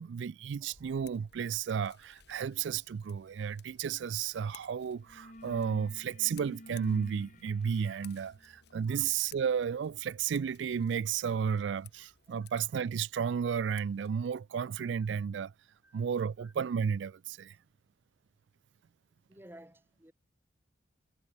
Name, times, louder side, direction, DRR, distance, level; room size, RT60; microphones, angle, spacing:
voice 1, 0.0-15.5 15.9-17.6, right 7 dB, 70° right, 0.3 m, -33 dB
Scissors, 0.7-14.4, left 10 dB, 60° left, 2.3 m, -60 dB
sound 1, 4.3-4.6 4.9-11.5, left 1 dB, 40° left, 4.7 m, -53 dB
voice 2, 19.3-20.1, right 1 dB, 10° right, 2.6 m, -54 dB
head